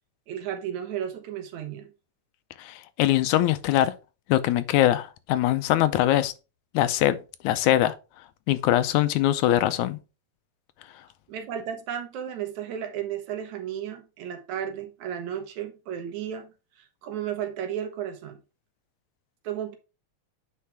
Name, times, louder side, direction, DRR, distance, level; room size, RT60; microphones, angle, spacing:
voice 1, 0.3-1.9 11.3-18.4 19.4-19.8, right 9 dB, 75° right, 2.4 m, -34 dB
voice 2, 2.6-3.9 4.3-6.3 6.7-7.2 7.4-8.0 8.5-10.0, left 13 dB, 85° left, 2.1 m, -22 dB
8.7 x 4.7 x 3.4 m
omnidirectional pair, 3.4 m